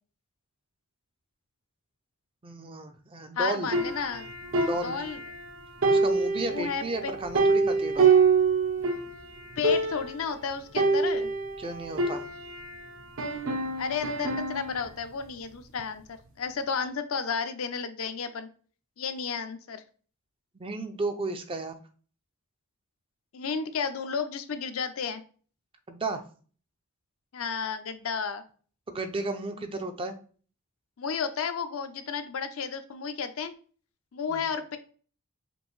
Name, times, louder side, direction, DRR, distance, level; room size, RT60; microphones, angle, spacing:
voice 1, 2.4-3.7 4.6-5.0 5.9-8.1 11.6-12.2 20.5-21.7 25.9-26.2 28.9-30.2 34.3-34.4, right 2 dB, 25° right, 7 dB, 0.4 m, -33 dB
voice 2, 3.4-4.3 4.8-5.2 6.4-7.1 9.6-11.3 13.8-18.5 19.0-19.8 23.3-25.2 27.3-28.4 31.0-33.5 34.1-34.8, left 6 dB, 70° left, 9 dB, 0.5 m, -32 dB
sound 1, 3.7-5.5 5.8-9.1 9.4-9.5 9.6-10.2 10.8-12.8 13.2-14.8, right 4 dB, 65° right, 0.7 m, -26 dB
5.2 x 2.6 x 3.1 m, 0.41 s
head